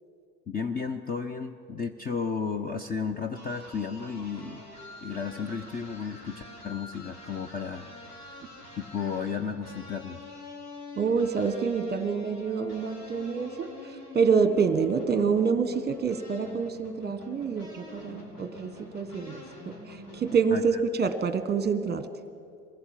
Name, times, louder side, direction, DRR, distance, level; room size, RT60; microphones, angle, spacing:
voice 1, 0.5-4.7 5.0-7.9 8.2-8.4 8.8-10.2 20.5-20.8, left 5 dB, 20° left, 9 dB, 0.7 m, -33 dB
sound 1, 3.3-20.4, left 2 dB, 65° left, 5.3 m, -46 dB
voice 2, 11.0-13.7 14.1-22.1, right 5 dB, 20° right, 12 dB, 1.3 m, -27 dB
23.0 x 15.5 x 7.5 m, 2.4 s
figure-of-eight pair, 80°, 49 cm